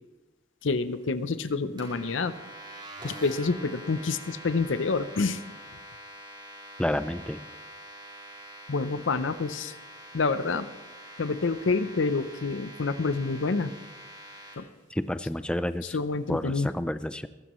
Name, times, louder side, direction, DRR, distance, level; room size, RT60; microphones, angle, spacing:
voice 1, 0.6-2.3 3.0-5.4 8.7-9.8 10.1-10.7 11.2-13.7 14.6-14.7 15.9-16.7, left 4 dB, 80° left, 13 dB, 0.7 m, -28 dB
sound 1, 1.8-14.5, right 1 dB, 25° right, 4.7 m, -45 dB
voice 2, 6.8-7.4 14.9-16.0 16.3-17.3, left 1 dB, 5° left, 12 dB, 0.4 m, -30 dB
22.0 x 13.5 x 3.1 m, 1.2 s
head